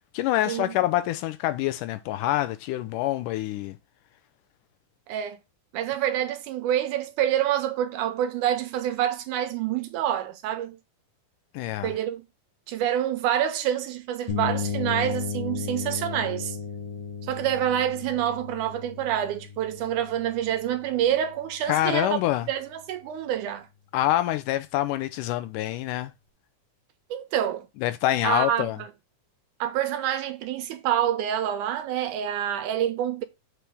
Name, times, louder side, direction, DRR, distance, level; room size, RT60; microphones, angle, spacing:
voice 1, 0.1-3.8 11.5-11.9 21.7-22.5 23.9-26.1 27.8-28.8, left 14 dB, 80° left, 2.1 m, -26 dB
voice 2, 5.1-5.4 5.7-10.8 11.8-12.2 12.7-16.6 17.2-22.2 22.5-23.7 27.1-27.7 28.2-28.9 29.6-33.2, right 10 dB, 80° right, 2.1 m, -27 dB
sound 1, 14.3-22.0, left 6 dB, 60° left, 2.2 m, -35 dB
7.0 x 4.6 x 3.5 m
omnidirectional pair, 3.8 m